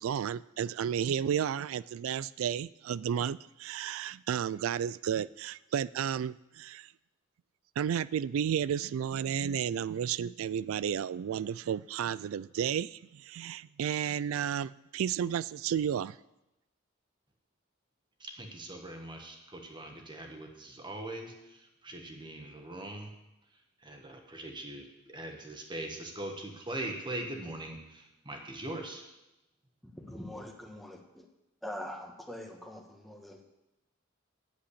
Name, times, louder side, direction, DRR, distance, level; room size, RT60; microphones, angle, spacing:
voice 1, 0.0-6.9 7.8-16.2, right 8 dB, 85° right, 0.3 m, -32 dB
voice 2, 18.2-23.1 23.8-29.1, right 1 dB, 25° right, 1.6 m, -41 dB
voice 3, 29.8-31.2 31.6-33.5, left 1 dB, ahead, 1.4 m, -43 dB
8.5 x 7.8 x 8.5 m
head